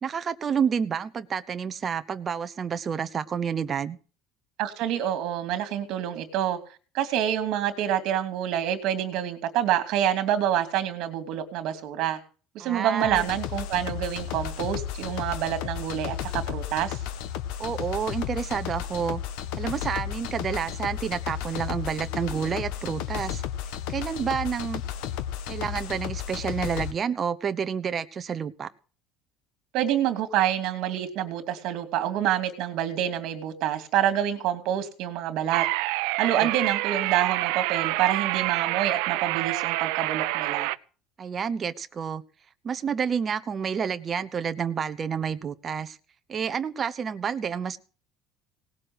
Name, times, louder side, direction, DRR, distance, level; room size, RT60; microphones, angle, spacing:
voice 1, 0.0-4.0 12.6-13.3 17.6-19.2 19.6-23.4 23.9-24.8 25.5-28.7 36.4-36.5 41.2-42.2 42.6-46.0 46.3-47.8, right 7 dB, 25° right, 10 dB, 0.9 m, -29 dB
voice 2, 4.6-6.6 6.9-12.2 12.5-17.0 29.7-35.7 36.2-40.7, right 11 dB, 55° right, 8 dB, 2.7 m, -27 dB
sound 1, 13.0-26.9, left 10 dB, 75° left, 1.6 m, -33 dB
sound 2, 35.5-40.8, right 21 dB, 85° right, 0.6 m, -27 dB
18.5 x 7.4 x 8.0 m, 0.39 s
cardioid pair, 170°, 0 cm